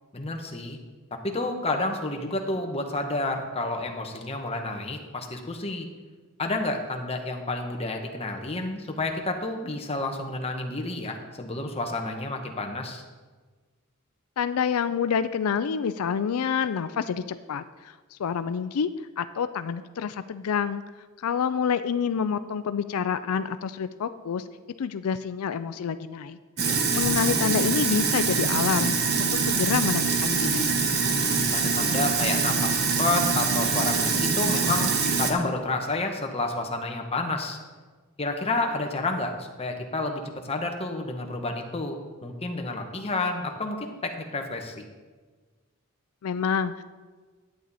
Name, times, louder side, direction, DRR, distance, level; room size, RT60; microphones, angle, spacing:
voice 1, 0.1-0.8 1.2-5.9 6.4-13.0 26.6-26.9 31.0-34.9 35.2-37.6 38.2-44.8, left 2 dB, 30° left, 3 dB, 1.1 m, -30 dB
voice 2, 14.4-18.9 19.2-20.8 21.2-24.5 24.8-30.7 46.2-46.8, left 7 dB, 85° left, 12 dB, 0.4 m, -28 dB
Sink (filling or washing), 26.6-35.3, right 4 dB, 50° right, 1.2 m, -24 dB
11.0 x 8.9 x 4.1 m, 1.4 s
head